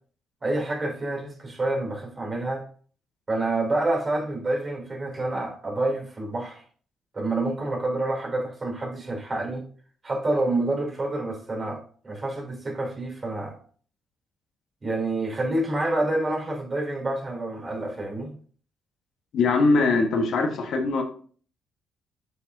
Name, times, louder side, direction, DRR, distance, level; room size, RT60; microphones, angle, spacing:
voice 1, 0.4-2.6 3.3-6.6 7.1-9.7 10.0-11.8 12.0-13.6 14.8-18.3, right 2 dB, 35° right, -1 dB, 3.2 m, -28 dB
voice 2, 19.3-21.0, left 3 dB, 70° left, 4 dB, 1.3 m, -21 dB
7.8 x 5.7 x 2.7 m, 0.44 s
cardioid pair, 90°, 0 cm